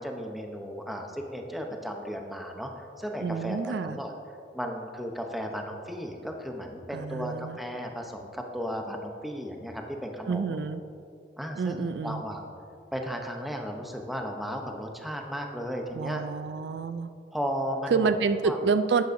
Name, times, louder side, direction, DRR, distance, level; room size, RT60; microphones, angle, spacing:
voice 1, 0.0-4.1 4.5-10.6 11.4-12.4 12.9-16.2 17.3-18.1 18.4-18.6, equal, ahead, 2 dB, 0.7 m, -35 dB
voice 2, 3.2-4.0 6.9-7.6 10.3-10.8 11.6-12.2 15.9-17.1 17.9-19.0, right 5 dB, 65° right, 11 dB, 0.3 m, -28 dB
11.5 x 9.3 x 2.6 m, 2.5 s
head